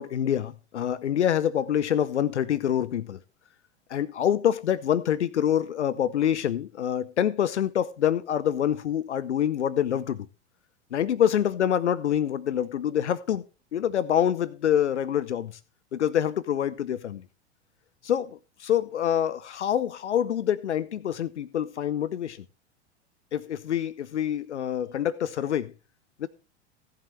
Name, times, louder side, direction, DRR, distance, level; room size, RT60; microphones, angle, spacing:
voice 1, 0.0-3.2 3.9-10.3 10.9-13.4 13.7-15.6 15.9-17.2 18.0-22.4 23.3-25.7 26.2-26.3, left 10 dB, 80° left, 0.7 m, -26 dB
17.5 x 7.7 x 3.2 m
figure-of-eight pair, 95°, 34 cm